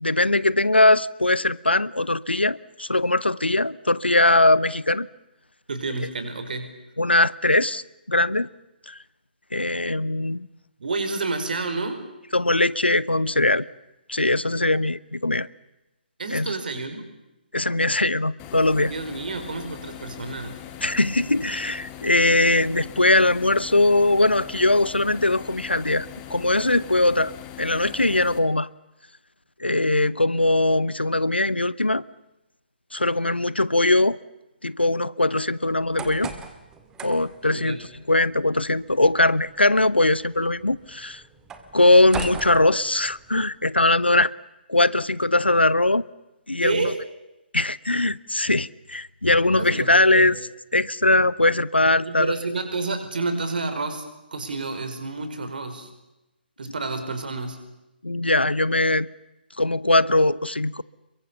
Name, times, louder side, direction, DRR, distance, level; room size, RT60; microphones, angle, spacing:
voice 1, 0.0-5.1 7.0-8.5 8.9-9.0 9.5-10.5 12.3-13.7 14.1-15.5 16.3-16.5 17.5-18.9 20.8-27.3 27.6-28.7 29.6-32.0 32.9-34.2 34.6-36.3 37.0-37.8 38.1-41.2 41.7-44.3 44.7-46.0 46.5-46.8 47.5-50.4 50.7-52.3 58.0-59.1 59.6-60.8, left 2 dB, 85° left, 0.8 m, -21 dB
voice 2, 5.7-6.8 10.8-12.0 16.2-17.1 18.9-20.7 37.5-37.8 46.6-47.1 49.5-50.4 52.0-54.1 54.3-55.9 56.6-57.7, right 3 dB, 55° right, 5.0 m, -29 dB
sound 1, 18.4-28.4, left 10 dB, 20° left, 2.0 m, -41 dB
sound 2, 35.7-43.4, right 6 dB, 10° right, 1.9 m, -40 dB
29.0 x 23.0 x 7.2 m
figure-of-eight pair, 140°, 6 cm